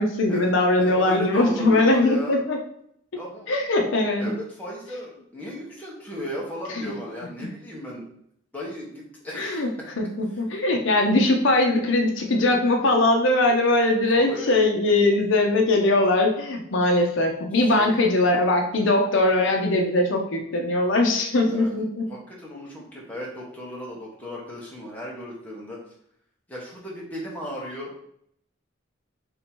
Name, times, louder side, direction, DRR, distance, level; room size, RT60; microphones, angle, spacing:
voice 1, 0.0-2.6 3.5-4.3 6.7-6.9 9.3-9.7 10.0-22.1, left 2 dB, 70° left, 2 dB, 0.6 m, -21 dB
voice 2, 0.8-2.4 3.1-3.5 4.2-8.0 8.5-9.9 14.1-14.5 17.6-18.0 21.4-21.7 22.1-25.8 26.5-27.9, left 1 dB, 10° left, -5 dB, 1.0 m, -35 dB
3.5 x 2.8 x 4.3 m, 0.70 s
head